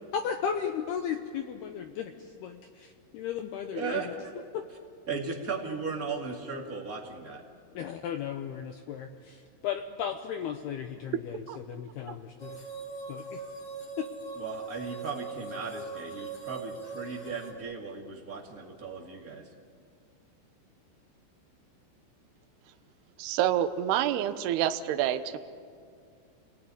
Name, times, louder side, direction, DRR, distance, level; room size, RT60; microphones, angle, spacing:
voice 1, 0.1-4.1 4.5-4.6 7.7-12.6 13.1-13.4 14.0-14.1, left 8 dB, 85° left, 6 dB, 2.3 m, -35 dB
voice 2, 3.7-4.1 5.1-7.4 14.4-19.4, right 5 dB, 50° right, -1 dB, 1.0 m, -36 dB
sound 1, 12.4-17.5, right 3 dB, 30° left, 2.6 m, -41 dB
voice 3, 23.2-25.4, right 11 dB, 75° right, 8 dB, 2.5 m, -27 dB
29.0 x 20.5 x 9.8 m, 2.3 s
omnidirectional pair, 5.9 m